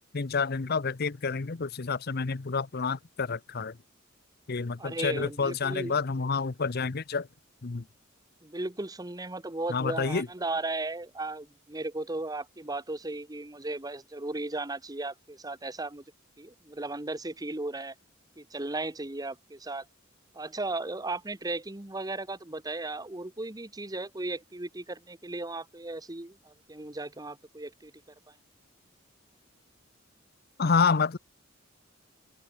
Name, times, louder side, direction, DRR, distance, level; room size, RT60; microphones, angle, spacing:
voice 1, 0.1-3.8 4.5-7.3 7.6-7.8 9.7-10.3 30.6-31.2, left 5 dB, 50° left, 0.7 m, -28 dB
voice 2, 4.8-6.0 8.4-16.0 16.4-17.9 18.4-19.8 20.3-27.9 28.3-28.4, right 2 dB, 20° right, 1.1 m, -36 dB
open air
head